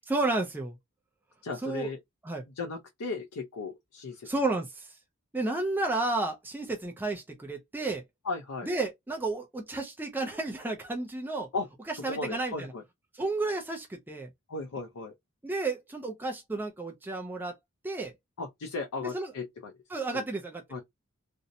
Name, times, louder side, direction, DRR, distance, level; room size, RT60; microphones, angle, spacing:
voice 1, 0.1-0.8 1.6-1.9 2.3-2.4 4.3-5.0 5.3-8.0 8.6-11.5 12.0-12.7 13.2-14.3 15.4-17.5 17.8-18.1 19.1-19.3 19.9-20.6, right 2 dB, 10° right, 0.3 m, -32 dB
voice 2, 1.4-2.0 2.6-4.3 8.2-8.7 11.5-11.7 12.0-12.8 14.5-15.1 18.4-19.7 20.1-20.2 20.7-20.8, left 3 dB, 85° left, 0.5 m, -36 dB
2.6 x 2.0 x 2.6 m
head